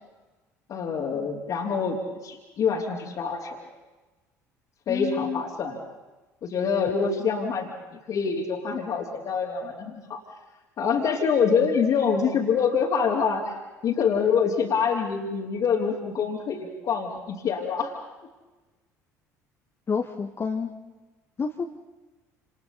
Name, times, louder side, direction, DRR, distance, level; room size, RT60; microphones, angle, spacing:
voice 1, 0.7-3.7 4.9-5.8 6.4-10.2 10.8-13.4 13.8-17.9, left 6 dB, 45° left, -4 dB, 3.6 m, -26 dB
voice 2, 4.9-5.4 19.9-20.7 21.4-21.7, left 5 dB, 30° left, 3 dB, 1.7 m, -29 dB
29.5 x 29.0 x 4.3 m, 1.2 s
figure-of-eight pair, 60°, 9 cm